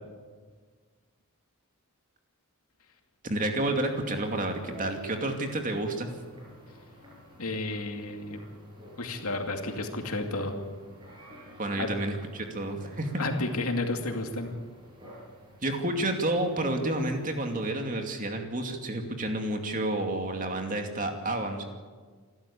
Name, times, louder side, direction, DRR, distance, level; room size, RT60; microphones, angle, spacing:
voice 1, 3.2-6.1 11.6-13.2 15.6-21.6, right 1 dB, 35° right, 4 dB, 2.5 m, -30 dB
sound 1, 3.7-17.7, equal, 20° right, 7.3 m, -51 dB
voice 2, 7.4-8.4 9.0-10.5 11.8-11.9 13.2-14.5, left 2 dB, 80° left, 4 dB, 2.5 m, -31 dB
28.0 x 12.5 x 8.6 m, 1.5 s
head